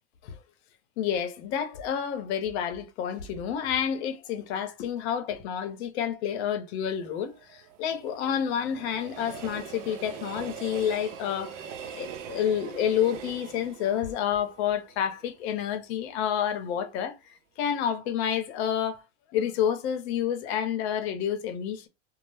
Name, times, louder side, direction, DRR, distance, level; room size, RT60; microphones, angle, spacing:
voice 1, 1.0-11.6 11.9-17.2 17.6-19.0 19.3-21.9, left 9 dB, 60° left, 0.7 m, -29 dB
Train, 6.8-15.9 16.3-16.4, right 7 dB, 75° right, 0.5 m, -42 dB
2.1 x 2.0 x 3.1 m
supercardioid pair, 125°, 37 cm